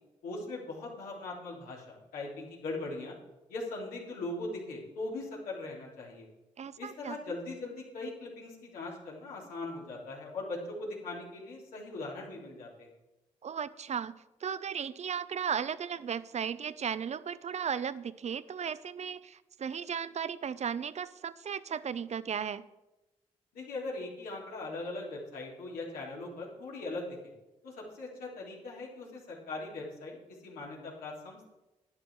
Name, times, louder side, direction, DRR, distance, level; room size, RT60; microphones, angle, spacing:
voice 1, 0.2-3.2 3.5-6.3 6.8-12.9 23.5-27.3 27.6-31.5, left 2 dB, 85° left, -3 dB, 3.3 m, -40 dB
voice 2, 6.6-7.2 13.4-22.6, right 7 dB, 50° right, 16 dB, 0.6 m, -36 dB
11.5 x 10.5 x 4.8 m, 0.99 s
supercardioid pair, 50°, 14 cm